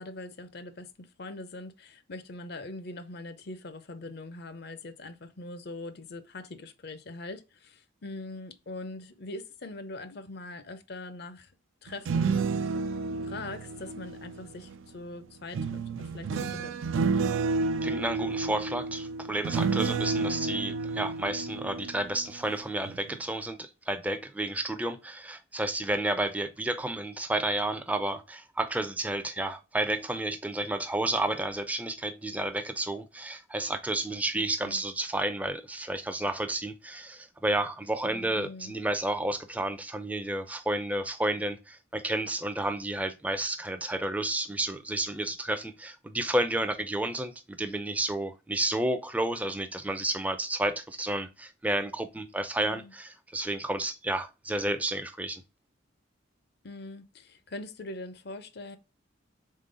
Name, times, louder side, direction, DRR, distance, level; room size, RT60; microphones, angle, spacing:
voice 1, 0.0-11.5 11.8-12.5 13.3-16.7 34.3-34.8 38.3-38.7 52.6-52.9 56.6-58.8, left 2 dB, 50° left, 0.6 m, -42 dB
sound 1, 11.9-14.8 15.5-22.5 22.8-23.2, right 4 dB, 70° right, 0.4 m, -31 dB
voice 2, 17.8-55.4, right 1 dB, 5° right, 0.4 m, -31 dB
3.8 x 3.6 x 3.7 m
head